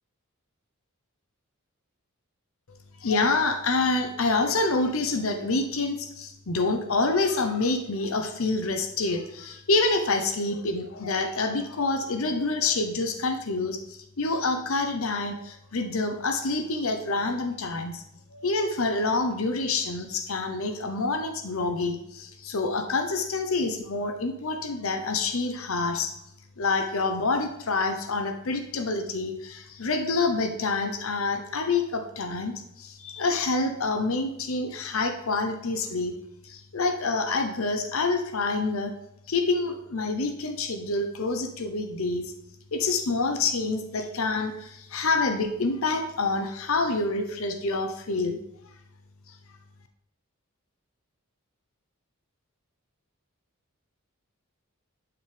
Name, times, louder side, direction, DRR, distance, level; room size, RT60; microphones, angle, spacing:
voice 1, 3.0-18.0 18.3-26.1 26.6-36.1 36.4-38.9 39.3-42.3 42.7-48.4, left 3 dB, 70° left, 6 dB, 0.8 m, -27 dB
11.0 x 5.9 x 3.4 m, 0.82 s
head